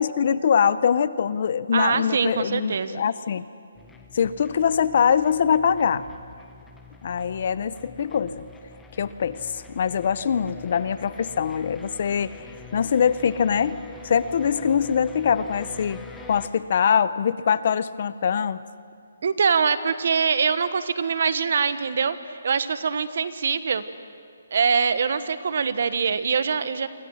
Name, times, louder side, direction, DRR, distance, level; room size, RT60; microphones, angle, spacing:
voice 1, 0.0-3.5 4.1-6.1 7.0-8.5 9.0-12.3 12.7-16.0 16.3-18.6, left 7 dB, 35° left, 16 dB, 0.6 m, -23 dB
voice 2, 1.7-3.0 19.2-23.8 24.5-26.9, right 6 dB, 45° right, 13 dB, 1.1 m, -23 dB
sound 1, 3.7-16.5, left 4 dB, 5° left, 1.1 m, -45 dB
29.0 x 25.0 x 6.4 m, 2.3 s
hypercardioid pair, 175°, 0 cm